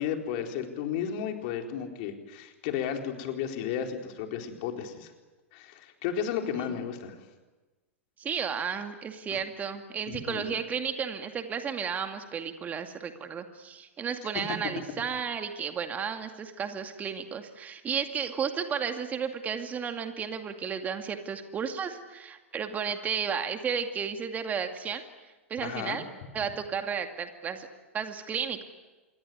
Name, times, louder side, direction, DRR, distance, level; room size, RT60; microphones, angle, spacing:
voice 1, 0.0-5.1 5.5-7.2 10.1-10.4 25.6-26.0, left 8 dB, 50° left, 3 dB, 4.2 m, -33 dB
voice 2, 8.2-25.0 25.5-26.0 26.3-27.7 27.9-28.6, right 7 dB, 20° right, 6 dB, 2.3 m, -33 dB
27.0 x 22.0 x 9.6 m, 1.2 s
figure-of-eight pair, 100°, 7 cm